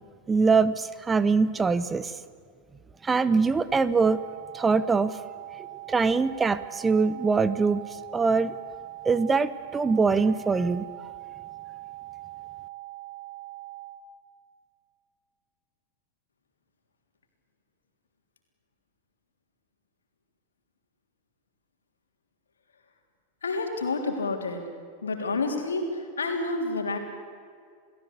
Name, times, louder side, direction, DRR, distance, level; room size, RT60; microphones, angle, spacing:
voice 1, 0.3-2.1 3.0-4.2 4.5-5.1 5.9-7.8 8.1-8.5 9.0-10.8, right 4 dB, 15° right, 15 dB, 0.9 m, -23 dB
sound 1, 4.0-14.0, right 17 dB, 55° right, 4.5 m, -42 dB
voice 2, 23.4-24.6 25.0-27.0, left 3 dB, 70° left, 4 dB, 3.4 m, -29 dB
29.0 x 18.0 x 8.4 m, 2.1 s
figure-of-eight pair, 90°, 0 cm